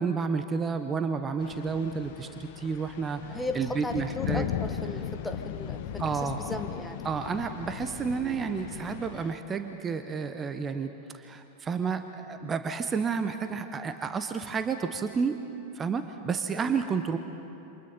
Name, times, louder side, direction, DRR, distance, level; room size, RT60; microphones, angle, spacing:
voice 1, 0.0-4.5 6.0-6.4 7.0-15.4 15.7-17.2, right 5 dB, 20° right, 8 dB, 1.1 m, -31 dB
sound 1, 1.4-9.3, left 10 dB, 50° left, 1.1 m, -37 dB
voice 2, 3.3-7.1 16.5-16.8, left 2 dB, 5° left, 6 dB, 1.3 m, -37 dB
28.5 x 26.5 x 5.5 m, 2.9 s
figure-of-eight pair, 90°, 0 cm